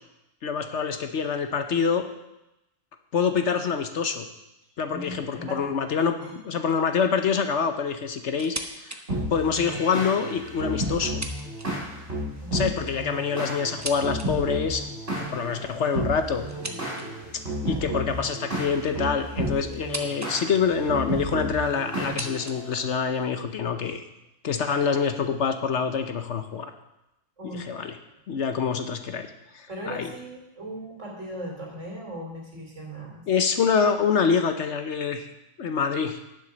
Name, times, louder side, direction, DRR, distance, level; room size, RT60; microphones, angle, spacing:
voice 1, 0.4-2.0 3.1-4.3 4.8-8.6 8.8-9.0 9.3-11.2 12.5-14.8 15.2-16.4 17.3-24.0 24.4-26.7 27.4-28.0 28.3-29.3 29.5-30.1 33.3-35.3 35.6-36.2, left 6 dB, 60° left, 7 dB, 1.1 m, -26 dB
voice 2, 4.9-5.7 6.2-6.3 12.4-12.7 17.6-17.9 27.4-27.7 29.7-33.2, equal, 65° right, -1 dB, 3.4 m, -38 dB
sound 1, 8.4-9.0 9.4-9.5 10.3-12.0 12.9-14.3 16.5-17.3 18.6-20.4 20.6-21.2 21.9-23.4, right 1 dB, 15° right, 0.7 m, -39 dB
sound 2, 9.1-22.8, right 1 dB, 45° right, 4.8 m, -32 dB
10.5 x 7.5 x 6.2 m, 0.90 s
omnidirectional pair, 1.4 m